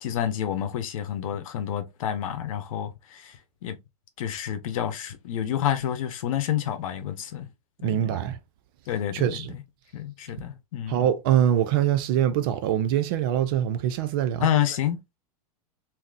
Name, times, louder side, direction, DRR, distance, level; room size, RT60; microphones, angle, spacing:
voice 1, 0.0-3.8 4.2-7.5 7.8-8.0 8.9-9.6 9.9-11.0 14.4-15.2, left 10 dB, 60° left, 0.8 m, -29 dB
voice 2, 7.8-8.4 9.1-9.5 10.9-14.5, right 10 dB, 35° right, 0.4 m, -24 dB
3.6 x 2.8 x 2.5 m
supercardioid pair, 155°, 20 cm